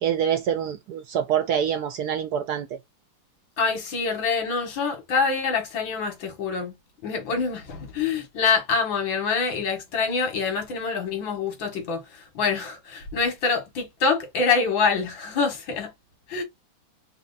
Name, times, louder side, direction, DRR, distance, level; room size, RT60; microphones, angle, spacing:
voice 1, 0.0-2.7, right 9 dB, 70° right, 0.9 m, -25 dB
voice 2, 3.6-6.7 7.0-15.9 16.3-16.4, left 5 dB, 75° left, 2.1 m, -25 dB
4.3 x 2.2 x 3.9 m
omnidirectional pair, 2.1 m